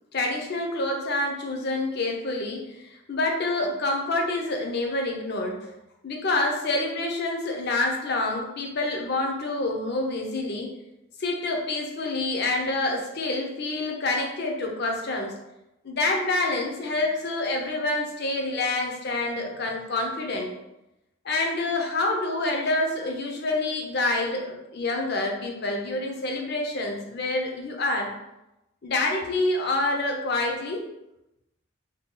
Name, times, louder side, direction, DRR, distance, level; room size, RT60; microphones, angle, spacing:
voice 1, 0.1-5.7 6.0-10.7 11.2-15.3 15.8-20.5 21.2-28.1 28.8-30.9, left 2 dB, 50° left, 1 dB, 0.5 m, -27 dB
2.7 x 2.2 x 3.6 m, 0.91 s
head